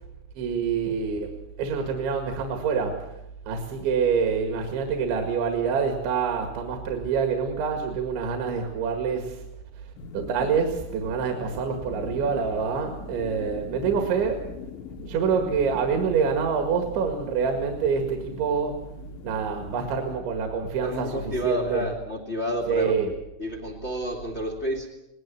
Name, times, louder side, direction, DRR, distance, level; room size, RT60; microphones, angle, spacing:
voice 1, 0.4-1.3 1.6-3.0 3.5-9.4 10.1-14.4 15.1-18.8 19.2-21.9 22.7-23.1, right 6 dB, 70° right, 4 dB, 4.1 m, -26 dB
sound 1, 10.0-20.2, left 8 dB, 75° left, 3.2 m, -42 dB
voice 2, 20.8-23.0 23.4-24.9, equal, 50° left, -1 dB, 0.7 m, -30 dB
21.0 x 19.5 x 7.6 m, 0.85 s
omnidirectional pair, 5.6 m